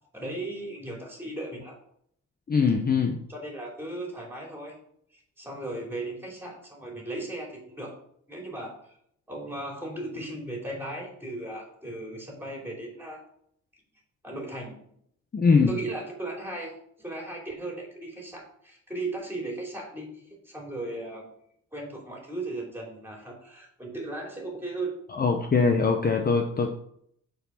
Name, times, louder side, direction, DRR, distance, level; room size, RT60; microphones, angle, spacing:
voice 1, 0.1-1.8 3.3-4.7 5.1-7.9 8.3-9.0 9.3-13.2 14.2-14.8 15.7-21.3 21.7-24.9, right 2 dB, 5° right, -1 dB, 3.2 m, -37 dB
voice 2, 2.5-3.2 15.3-15.7 25.1-26.7, left 5 dB, 30° left, 3 dB, 0.8 m, -22 dB
6.5 x 4.8 x 5.8 m, 0.69 s
cardioid pair, 90°, 30 cm